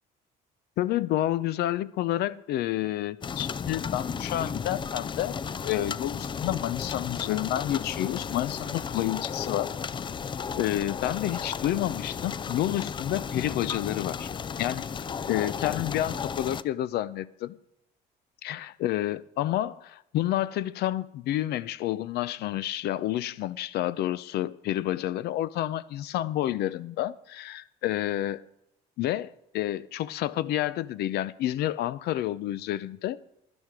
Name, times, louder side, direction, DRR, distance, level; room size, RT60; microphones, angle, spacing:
voice 1, 0.8-5.4 5.6-9.7 10.6-14.3 14.6-14.9 15.3-17.6 18.4-28.4 29.0-33.2, left 13 dB, 75° left, 0.6 m, -29 dB
Soft rain on roof window, 3.2-16.6, left 6 dB, 30° left, 0.4 m, -34 dB
12.5 x 11.0 x 4.9 m
cardioid pair, 110°, 17 cm